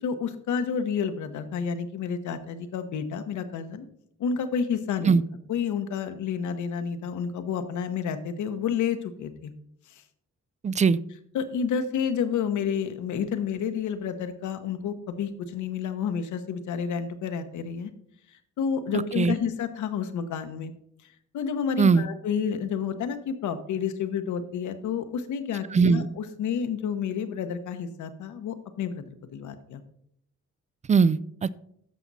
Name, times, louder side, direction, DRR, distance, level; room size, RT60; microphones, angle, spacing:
voice 1, 0.0-3.9 4.2-5.1 5.5-9.5 9.9-10.0 11.3-17.9 18.6-20.7 21.3-29.8, left 7 dB, 75° left, 10 dB, 1.1 m, -30 dB
voice 2, 10.6-11.0 19.2-19.4 21.8-22.1 25.7-26.1 30.9-31.5, right 5 dB, 25° right, 19 dB, 0.3 m, -20 dB
14.0 x 5.9 x 4.1 m, 0.71 s
cardioid pair, 90°, 30 cm